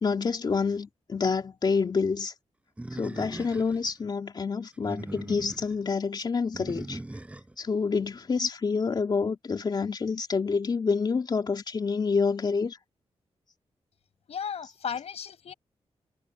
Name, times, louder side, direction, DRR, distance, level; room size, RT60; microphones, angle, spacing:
voice 1, 0.0-2.3 3.0-7.0 7.6-12.8, left 5 dB, 40° left, 3.4 m, -28 dB
Animal, 2.8-3.9 4.7-5.7 6.5-7.5, right 1 dB, 10° right, 4.6 m, -39 dB
voice 2, 14.3-15.5, left 7 dB, 70° left, 5.8 m, -35 dB
wide cardioid pair, 145°, 11 cm